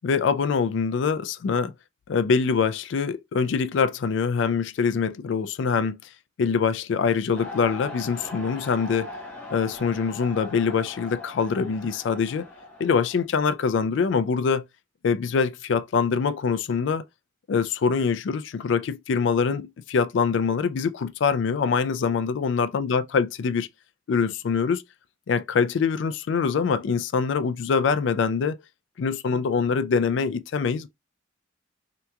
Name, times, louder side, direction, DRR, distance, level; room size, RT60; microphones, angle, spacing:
voice 1, 0.0-1.7 2.1-6.0 6.4-9.1 9.5-12.5 12.8-14.6 15.0-17.0 17.5-23.7 24.1-24.8 25.3-28.6 29.0-30.9, left 5 dB, 65° left, 0.3 m, -24 dB
sound 1, 7.4-13.2, left 2 dB, 10° left, 0.9 m, -40 dB
3.4 x 2.9 x 2.2 m
head